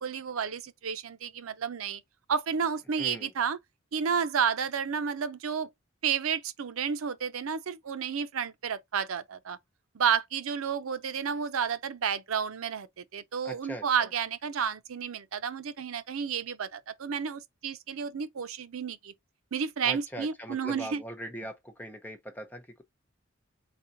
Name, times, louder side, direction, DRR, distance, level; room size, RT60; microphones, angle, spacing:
voice 1, 0.0-2.0 2.3-3.6 3.9-5.7 6.0-9.6 9.9-19.1 19.5-21.0, right 7 dB, 90° right, 0.5 m, -31 dB
voice 2, 3.0-3.3 13.4-14.1 19.8-22.8, right 1 dB, 10° left, 0.8 m, -41 dB
4.2 x 3.6 x 2.6 m
head